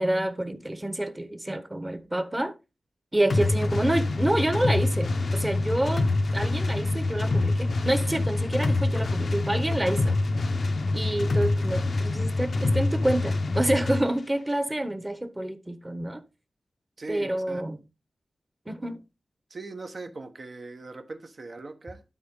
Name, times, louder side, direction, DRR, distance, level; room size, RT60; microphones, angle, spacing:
voice 1, 0.0-2.5 3.1-6.1 6.3-10.2 10.9-16.2 17.1-17.8 18.7-19.0, right 1 dB, 15° right, 1.2 m, -28 dB
sound 1, 3.3-14.0, left 2 dB, 70° left, 0.7 m, -26 dB
voice 2, 17.0-17.6 19.5-22.0, right 3 dB, 55° right, 1.3 m, -40 dB
11.5 x 4.3 x 3.8 m
wide cardioid pair, 75°, 0 cm